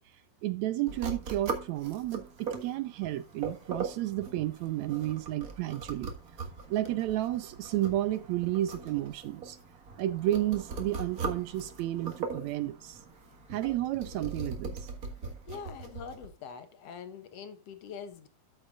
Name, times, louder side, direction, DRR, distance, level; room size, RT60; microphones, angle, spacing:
voice 1, 0.4-6.1 6.7-9.6 10.0-13.0 13.5-14.9, right 14 dB, 80° right, 1.7 m, -32 dB
sound 1, 0.9-16.3, right 4 dB, 40° right, 1.3 m, -40 dB
voice 2, 15.5-18.3, left 6 dB, 65° left, 1.8 m, -44 dB
13.0 x 6.6 x 2.4 m
omnidirectional pair, 3.7 m